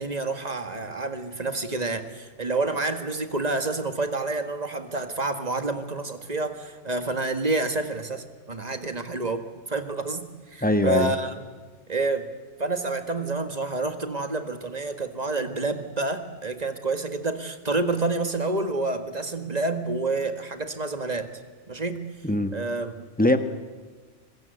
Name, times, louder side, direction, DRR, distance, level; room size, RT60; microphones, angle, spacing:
voice 1, 0.0-11.5 11.9-12.3 12.6-21.3 21.7-22.0 22.5-23.0, right 3 dB, 35° right, 8 dB, 1.8 m, -28 dB
voice 2, 10.6-11.1 22.2-22.6 23.2-23.4, left 1 dB, 10° left, 8 dB, 1.4 m, -21 dB
25.5 x 22.5 x 8.2 m, 1.4 s
omnidirectional pair, 1.2 m